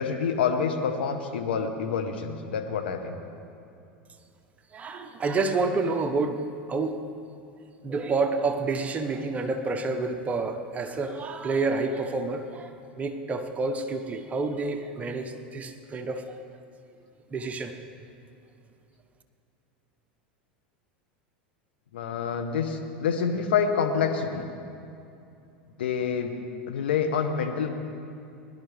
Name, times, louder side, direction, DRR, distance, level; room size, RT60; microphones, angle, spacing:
voice 1, 0.0-3.2 21.9-24.5 25.8-26.3 26.7-27.7, left 6 dB, 80° left, 5 dB, 1.1 m, -27 dB
voice 2, 4.7-7.0 7.8-16.4 17.3-17.8, right 3 dB, 25° right, 6 dB, 1.0 m, -29 dB
21.0 x 11.5 x 3.5 m, 2.6 s
hypercardioid pair, 90°, 6 cm